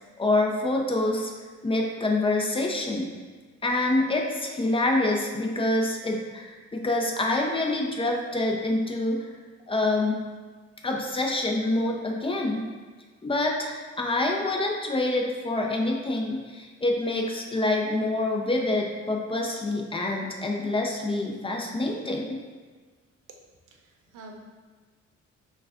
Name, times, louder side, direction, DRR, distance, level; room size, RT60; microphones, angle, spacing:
voice 1, 0.2-1.3 1.6-3.1 3.6-9.3 9.7-10.2 10.8-12.7 13.2-22.4, left 2 dB, 20° left, 1 dB, 0.6 m, -26 dB
voice 2, 23.7-24.4, right 2 dB, 85° right, 2 dB, 0.6 m, -47 dB
5.9 x 2.3 x 2.5 m, 1.4 s
cardioid pair, 90°, 30 cm